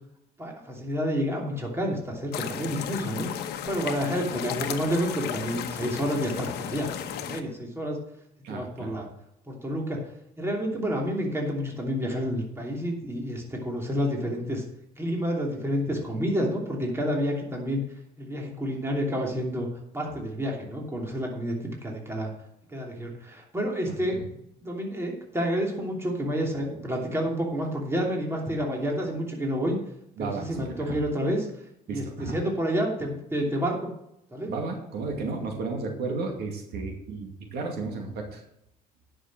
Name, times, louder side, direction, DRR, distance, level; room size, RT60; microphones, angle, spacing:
voice 1, 0.4-3.3 3.7-8.0 8.5-9.1 9.5-10.0 10.4-14.6 15.0-17.8 18.2-19.7 19.9-22.3 22.7-24.2 24.6-29.8 30.2-31.5 31.9-33.9 34.3-34.5, equal, 15° right, -1 dB, 2.9 m, -29 dB
sound 1, 2.3-7.4, left 10 dB, 75° left, 1.1 m, -34 dB
voice 2, 8.4-8.9 23.9-24.3 30.2-31.0 31.9-32.4 34.5-38.4, right 3 dB, 70° right, 2 dB, 2.4 m, -33 dB
10.0 x 6.4 x 6.1 m, 0.79 s
cardioid pair, 110°, 17 cm